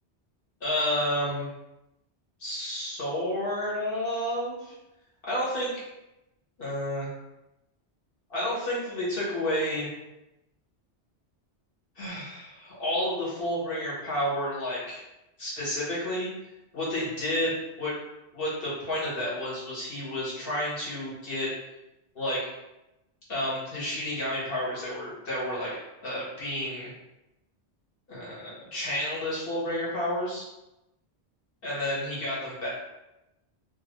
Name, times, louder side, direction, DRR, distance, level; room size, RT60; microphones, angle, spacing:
voice 1, 0.6-1.5 2.4-4.7 5.2-5.7 6.6-7.1 8.3-9.9 12.0-15.0 15.4-16.3 16.7-17.9 18.3-21.5 22.1-22.5 23.3-26.9 28.1-30.4 31.6-32.7, left 1 dB, 55° left, -7 dB, 1.4 m, -30 dB
2.7 x 2.5 x 3.0 m, 0.94 s
omnidirectional pair, 1.1 m